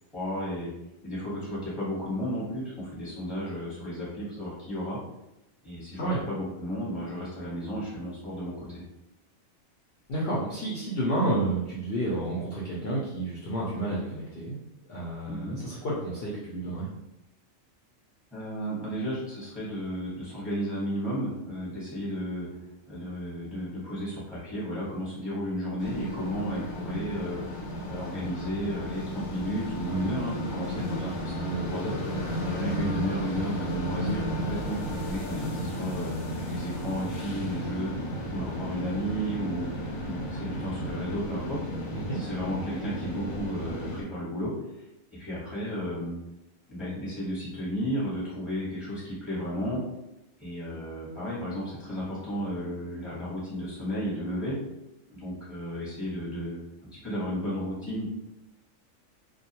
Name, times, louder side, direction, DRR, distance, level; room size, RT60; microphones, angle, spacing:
voice 1, 0.1-0.7 1.0-5.0 5.6-8.8 15.3-15.6 18.3-22.5 22.9-27.6 27.9-32.0 32.4-37.9 38.3-39.7 40.0-41.6 42.1-44.5 45.1-46.1 46.7-49.8 50.4-54.6 55.1-56.6 56.9-58.1, equal, ahead, -8 dB, 0.8 m, -33 dB
voice 2, 10.1-14.6 14.9-16.9 29.8-30.1 41.9-42.2, right 1 dB, 60° left, -6 dB, 0.7 m, -30 dB
sound 1, 25.8-44.0, equal, 90° left, 1.0 m, -33 dB
2.3 x 2.2 x 2.8 m, 0.91 s
omnidirectional pair, 1.3 m